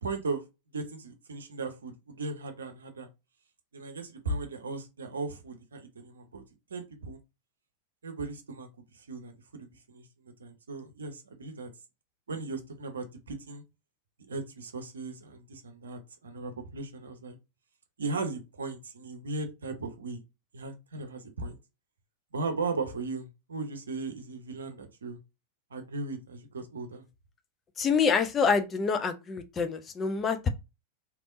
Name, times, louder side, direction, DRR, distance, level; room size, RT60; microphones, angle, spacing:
voice 1, 0.0-0.4 0.7-3.1 3.7-6.4 6.7-7.2 8.0-8.7 8.9-11.7 12.3-13.6 14.3-17.4 18.0-20.2 20.5-21.6 22.3-25.2 25.7-27.1, right 3 dB, 70° right, 0.7 m, -37 dB
voice 2, 27.8-30.5, left 5 dB, 25° left, 0.5 m, -26 dB
3.4 x 2.9 x 2.5 m
figure-of-eight pair, 90°, 0 cm